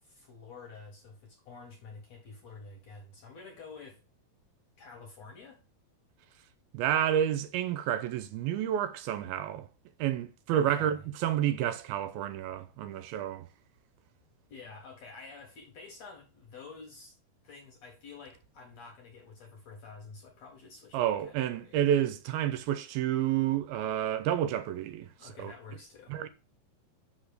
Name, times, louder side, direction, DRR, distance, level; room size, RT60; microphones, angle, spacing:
voice 1, 0.0-4.0 4.8-5.6 10.5-11.0 14.5-17.2 17.4-21.8 25.2-26.2, left 4 dB, 60° left, 1.9 m, -49 dB
voice 2, 6.7-9.7 10.0-13.5 20.9-25.5 26.1-26.3, right 10 dB, 80° right, 2.3 m, -30 dB
6.0 x 5.7 x 6.5 m
omnidirectional pair, 4.5 m